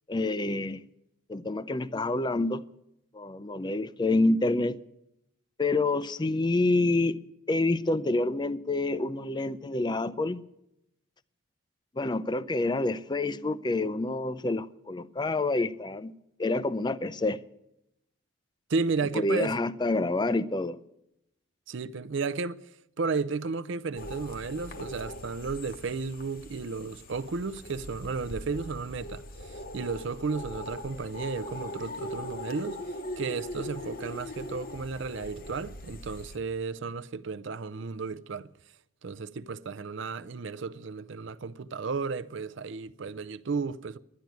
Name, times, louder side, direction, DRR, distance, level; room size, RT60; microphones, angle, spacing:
voice 1, 0.1-0.8 1.3-2.6 3.1-4.8 5.6-7.2 7.5-10.4 12.0-16.1 16.4-17.4 19.1-20.8, left 2 dB, 20° left, 0.4 m, -27 dB
voice 2, 18.7-19.6 21.7-22.6 23.0-32.8 33.2-38.5 39.0-44.0, right 4 dB, 55° right, 0.5 m, -33 dB
sound 1, 24.0-36.4, left 1 dB, 40° left, 0.9 m, -41 dB
11.5 x 10.5 x 9.2 m
head